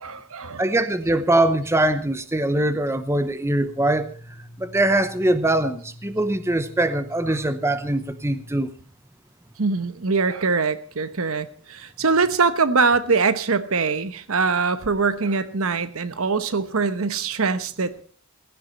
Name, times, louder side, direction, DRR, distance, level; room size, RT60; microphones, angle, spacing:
voice 1, 0.0-0.8 7.3-7.4 9.6-18.0, right 4 dB, 70° right, 1.0 m, -23 dB
voice 2, 0.6-4.1 4.6-8.7, right 1 dB, 10° right, 0.8 m, -22 dB
sound 1, 3.6-8.6, equal, 35° left, 6.0 m, -45 dB
16.0 x 14.5 x 4.1 m
head